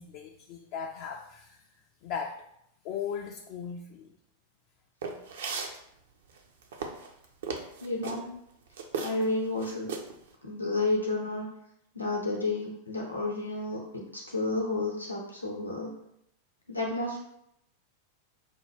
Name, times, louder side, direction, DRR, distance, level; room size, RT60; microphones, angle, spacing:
voice 1, 0.0-1.6 2.0-2.4 2.8-4.1, left 7 dB, 45° left, 2 dB, 0.3 m, -37 dB
sound 1, 5.0-5.8 6.4-8.2 8.8-9.3 9.6-10.2, right 5 dB, 60° right, 0.5 m, -35 dB
voice 2, 7.8-8.3 9.0-9.9 10.4-11.5 11.9-15.9 16.7-17.2, left 2 dB, 85° left, -1 dB, 0.7 m, -31 dB
5.3 x 2.2 x 3.3 m, 0.76 s
figure-of-eight pair, 90°, 0 cm